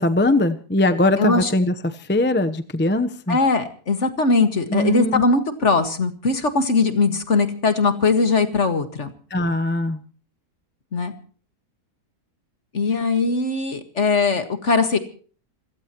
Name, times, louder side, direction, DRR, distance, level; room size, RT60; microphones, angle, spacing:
voice 1, 0.0-1.7 2.1-3.4 4.7-5.2 9.3-10.0, left 1 dB, 10° left, 9 dB, 0.7 m, -20 dB
voice 2, 1.2-1.5 3.3-9.1 10.9-11.1 12.7-15.0, left 3 dB, 45° left, 8 dB, 2.1 m, -20 dB
28.0 x 16.5 x 3.1 m, 0.41 s
omnidirectional pair, 1.7 m